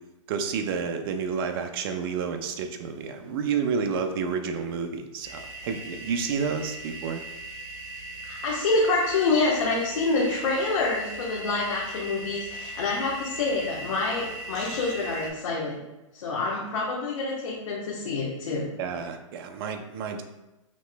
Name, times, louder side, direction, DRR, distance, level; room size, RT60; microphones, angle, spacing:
voice 1, 0.3-7.2 18.8-20.2, right 6 dB, 45° right, 6 dB, 0.6 m, -30 dB
sound 1, 5.2-15.3, right 1 dB, 20° right, 1.4 m, -39 dB
voice 2, 8.2-15.8 16.1-18.7, left 3 dB, 70° left, -5 dB, 1.0 m, -27 dB
6.0 x 2.9 x 2.2 m, 0.98 s
hypercardioid pair, 135°, 17 cm